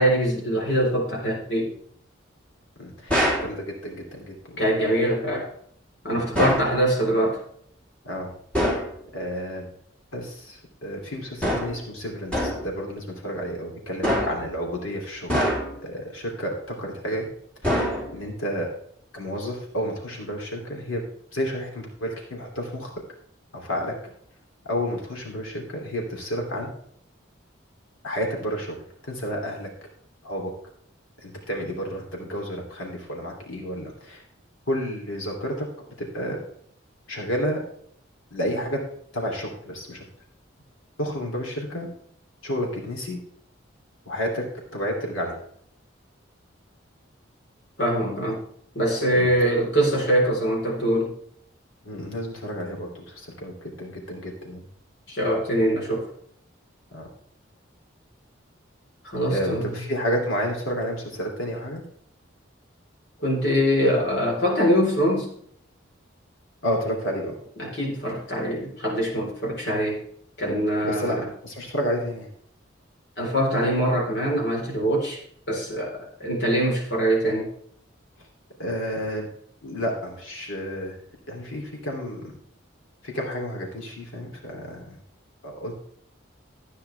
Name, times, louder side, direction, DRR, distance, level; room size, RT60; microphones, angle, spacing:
voice 1, 0.0-1.7 4.6-5.5 6.0-7.4 47.8-48.4 48.7-51.2 55.1-56.1 59.0-59.7 63.2-65.3 67.6-70.0 70.4-71.3 73.2-75.2 75.5-77.5, equal, 55° left, -2 dB, 4.1 m, -23 dB
voice 2, 2.8-4.6 6.1-6.2 8.0-8.3 9.1-9.7 10.1-15.4 15.8-17.3 17.6-17.8 18.1-18.7 19.1-21.1 21.3-22.9 23.5-24.1 24.6-26.7 28.0-28.8 29.0-29.7 30.2-30.5 31.2-34.2 34.7-35.7 36.0-36.4 37.1-37.6 38.3-38.8 39.1-40.0 41.0-41.9 42.4-43.2 44.0-44.5 44.7-45.4 49.1-49.3 51.8-54.6 56.9-57.1 59.3-61.8 66.6-67.4 70.8-71.2 71.4-72.3 78.2-78.3 78.6-79.3 79.6-81.0 81.3-82.3 83.0-85.0 85.4-85.8, equal, 90° left, 0 dB, 3.1 m, -31 dB
sound 1, 3.1-3.5 6.3-6.8 8.5-8.9 11.4-11.8 12.3-12.7 14.0-14.5 15.3-15.9 17.6-18.3, equal, 5° left, 3.4 m, -24 dB
13.5 x 9.5 x 3.4 m, 0.65 s
head